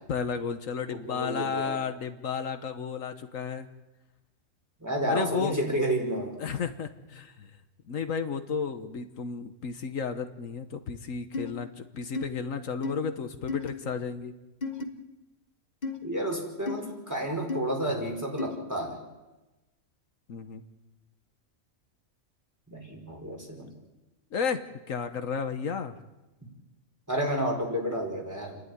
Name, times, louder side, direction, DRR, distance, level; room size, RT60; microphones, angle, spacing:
voice 1, 0.1-3.7 5.1-5.6 6.4-7.5 7.9-11.7 11.9-14.3 20.3-20.6 24.3-25.9, left 6 dB, 75° left, 8 dB, 1.5 m, -33 dB
voice 2, 0.9-1.8 4.8-6.4 16.0-19.0 22.7-23.7 27.1-28.6, right 1 dB, 10° right, 0 dB, 4.9 m, -31 dB
sound 1, 11.3-11.5 12.1-12.3 12.8-13.0 13.5-13.7 14.6-14.9 15.8-16.0 16.7-16.8 17.5-17.6 18.4-18.6, left 4 dB, 35° left, 1.4 m, -32 dB
30.0 x 11.5 x 9.6 m, 1.1 s
omnidirectional pair, 1.4 m